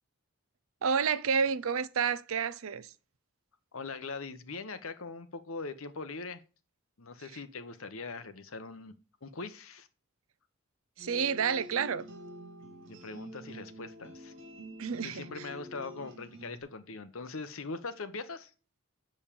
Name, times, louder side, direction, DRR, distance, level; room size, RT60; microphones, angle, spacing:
voice 1, 0.8-2.9 11.0-12.1 14.8-15.5, right 6 dB, 75° right, 0.6 m, -30 dB
voice 2, 3.7-6.4 7.0-8.9 9.2-9.9 12.6-14.3 15.0-18.5, left 3 dB, 70° left, 1.0 m, -41 dB
sound 1, 11.0-16.6, right 1 dB, 55° right, 2.8 m, -47 dB
7.1 x 5.4 x 6.8 m
head